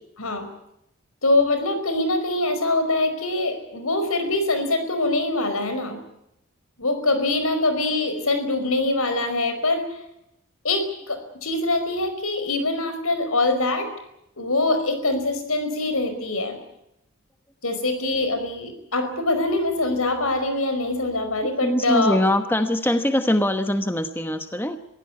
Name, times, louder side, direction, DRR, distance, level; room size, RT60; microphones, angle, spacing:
voice 1, 1.2-6.0 6.8-9.9 10.6-13.9 14.4-16.6 17.6-22.2, left 2 dB, 75° left, 9 dB, 5.0 m, -24 dB
voice 2, 21.6-24.8, left 1 dB, 10° left, 8 dB, 1.0 m, -22 dB
24.0 x 16.0 x 9.7 m, 0.81 s
head